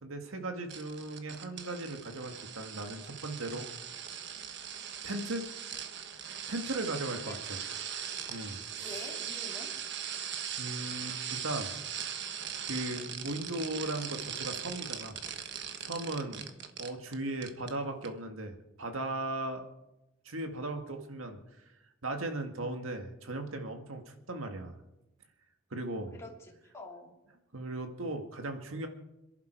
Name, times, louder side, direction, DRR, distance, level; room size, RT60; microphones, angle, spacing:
voice 1, 0.0-3.7 5.0-5.5 5.9-7.6 8.3-9.1 10.6-11.7 12.6-15.2 15.8-16.4 16.8-19.6 20.3-21.4 22.0-24.8 25.7-26.2 27.5-28.9, right 2 dB, 85° right, 5 dB, 2.0 m, -37 dB
sound 1, 0.7-17.1 17.4-17.7 18.0-18.1, right 8 dB, 60° right, 1.3 m, -40 dB
voice 2, 8.8-9.7 16.2-16.6 26.1-27.1, left 2 dB, 15° left, -2 dB, 2.7 m, -47 dB
27.0 x 11.0 x 4.6 m, 0.93 s
head